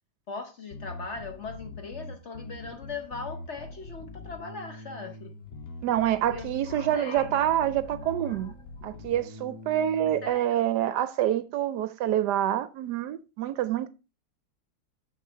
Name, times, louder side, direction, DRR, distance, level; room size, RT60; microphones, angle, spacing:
voice 1, 0.3-5.3 6.3-7.4 8.0-8.5 10.2-10.7, left 4 dB, 50° left, 0.9 m, -40 dB
Bass guitar, 0.7-10.3, left 2 dB, 70° left, 1.6 m, -43 dB
voice 2, 5.8-8.5 8.8-13.9, right 11 dB, 75° right, 1.1 m, -27 dB
6.5 x 6.4 x 4.4 m
omnidirectional pair, 2.0 m